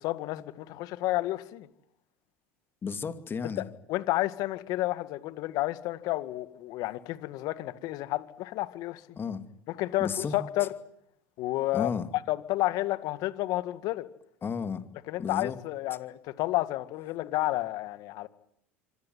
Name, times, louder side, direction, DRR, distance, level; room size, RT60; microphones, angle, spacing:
voice 1, 0.0-1.7 3.6-3.7 3.9-9.2 9.7-10.7 11.4-11.9 12.3-14.1 15.1-18.3, left 17 dB, 60° left, 2.0 m, -31 dB
voice 2, 2.8-3.7 9.2-9.4 10.0-10.3 11.7-12.1 14.4-14.8 15.2-15.6, left 6 dB, 30° left, 2.6 m, -32 dB
25.5 x 19.0 x 9.6 m
hypercardioid pair, 85°, 7 cm